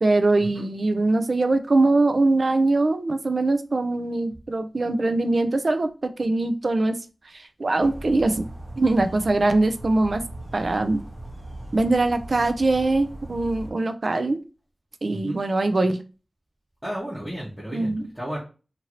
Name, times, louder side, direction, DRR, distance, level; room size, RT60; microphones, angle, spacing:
voice 1, 0.0-7.0 7.3-8.5 8.8-10.2 10.5-11.0 11.7-14.4 15.0-16.0 17.7-18.1, right 2 dB, 60° right, 9 dB, 0.4 m, -22 dB
birds traffic, 7.8-13.7, right 1 dB, 40° right, 1.0 m, -39 dB
voice 2, 16.8-18.4, equal, 15° right, -7 dB, 1.0 m, -33 dB
2.8 x 2.5 x 2.9 m, 0.34 s
wide cardioid pair, 80°, 0 cm